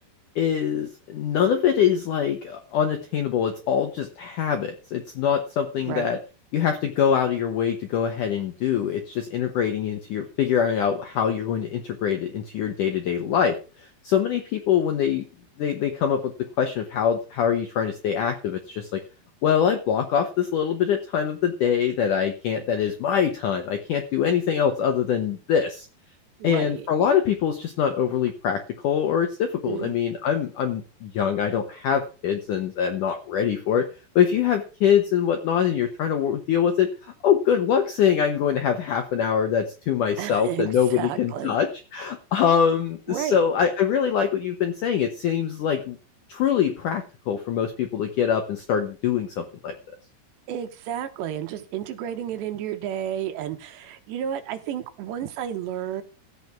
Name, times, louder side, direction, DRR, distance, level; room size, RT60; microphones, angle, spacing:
voice 1, 0.4-6.2 6.5-15.3 15.6-19.0 19.4-25.9 26.4-33.9 34.2-46.0 46.3-49.7, left 8 dB, 75° left, 6 dB, 1.9 m, -24 dB
voice 2, 26.4-26.9 29.7-29.9 40.2-41.6 43.1-43.4 50.5-56.0, right 10 dB, 75° right, 9 dB, 3.2 m, -31 dB
14.0 x 8.2 x 6.0 m, 0.35 s
omnidirectional pair, 5.2 m